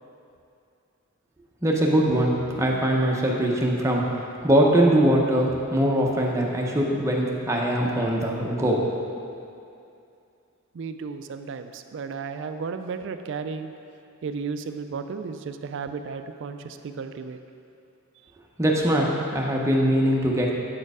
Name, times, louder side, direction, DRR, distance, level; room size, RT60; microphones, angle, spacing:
voice 1, 1.6-4.0 4.4-8.8 18.6-20.5, right 1 dB, 15° right, -2 dB, 0.7 m, -22 dB
voice 2, 10.7-13.7 14.2-17.4, right 5 dB, 60° right, 8 dB, 0.3 m, -34 dB
7.9 x 4.4 x 4.8 m, 2.5 s
head